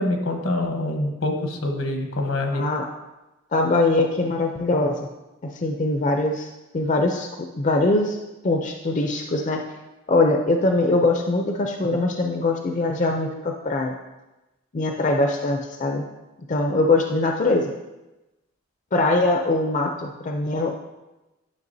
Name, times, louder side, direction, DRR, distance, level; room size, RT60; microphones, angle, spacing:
voice 1, 0.0-2.6, left 1 dB, 75° left, 3 dB, 1.1 m, -25 dB
voice 2, 2.5-2.8 3.5-5.1 5.5-6.5 6.7-7.3 7.6-8.2 8.4-9.6 10.1-14.0 14.7-16.0 16.5-17.7 18.9-20.7, left 2 dB, 35° left, 3 dB, 0.5 m, -22 dB
10.5 x 5.7 x 2.7 m, 1.0 s
head